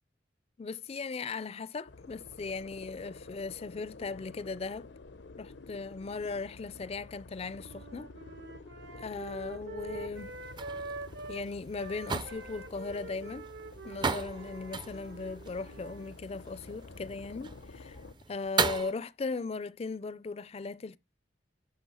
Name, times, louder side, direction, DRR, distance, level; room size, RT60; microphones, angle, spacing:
voice 1, 0.6-4.9 5.4-8.1 9.0-10.4 11.3-13.5 13.8-18.0 18.3-21.0, left 4 dB, 35° left, 0.4 m, -38 dB
sound 1, 1.9-18.1, left 3 dB, 85° left, 0.8 m, -50 dB
sound 2, 7.6-11.5 11.7-16.1, right 2 dB, 75° right, 1.1 m, -45 dB
sound 3, 10.2-18.9, right 5 dB, 25° right, 0.5 m, -37 dB
10.5 x 5.2 x 5.6 m
head